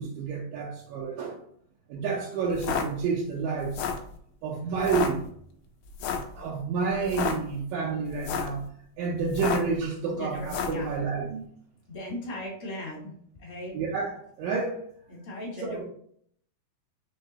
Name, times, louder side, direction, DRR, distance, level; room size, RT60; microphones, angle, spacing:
voice 1, 0.0-1.4 1.9-3.8 4.4-5.3 6.3-8.6 9.0-11.4 13.7-14.8 15.6-15.9, right 5 dB, 80° right, -4 dB, 2.3 m, -29 dB
sound 1, 2.5-2.9 3.6-4.1 4.8-5.1 6.0-6.3 7.0-7.4 8.1-8.6 9.3-9.7 10.4-10.8, left 7 dB, 85° left, 2.1 m, -30 dB
voice 2, 10.2-10.9 11.9-13.1 13.4-13.7 15.1-15.8, left 1 dB, 40° left, -4 dB, 0.8 m, -38 dB
5.6 x 3.2 x 2.8 m, 0.64 s
omnidirectional pair, 3.8 m